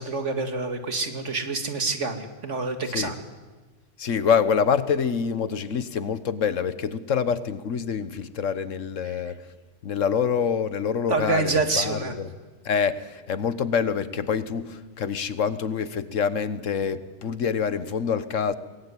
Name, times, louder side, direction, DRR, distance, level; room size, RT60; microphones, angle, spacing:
voice 1, 0.0-3.1 11.1-12.1, right 3 dB, 75° right, 7 dB, 2.5 m, -27 dB
voice 2, 4.0-9.5 9.8-12.3 12.6-18.5, left 6 dB, 90° left, 14 dB, 1.5 m, -26 dB
24.5 x 20.0 x 9.8 m, 1.3 s
omnidirectional pair, 1.3 m